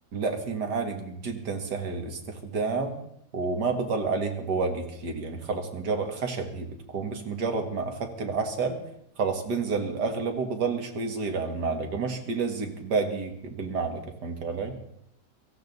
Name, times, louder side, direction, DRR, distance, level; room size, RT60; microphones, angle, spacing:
voice 1, 0.1-3.0 3.3-8.8 9.2-14.8, right 4 dB, 80° right, 5 dB, 2.2 m, -30 dB
17.0 x 14.5 x 4.0 m, 0.75 s
omnidirectional pair, 1.8 m